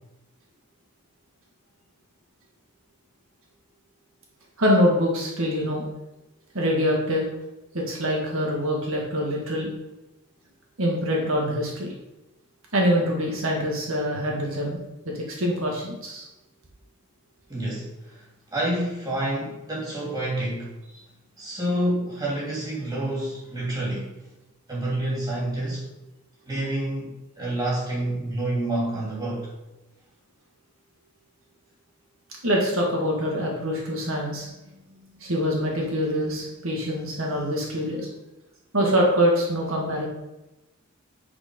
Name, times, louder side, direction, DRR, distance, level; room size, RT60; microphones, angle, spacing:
voice 1, 4.6-5.8 6.5-7.3 7.7-9.7 10.8-11.9 12.7-14.8 15.1-16.3 32.4-34.5 35.2-38.1 38.7-40.1, equal, 70° right, -1 dB, 1.8 m, -24 dB
voice 2, 17.5-18.2 18.5-20.8 21.4-24.1 24.7-25.9 26.5-29.5, right 1 dB, 20° right, -5 dB, 2.9 m, -28 dB
9.6 x 4.6 x 5.3 m, 0.97 s
head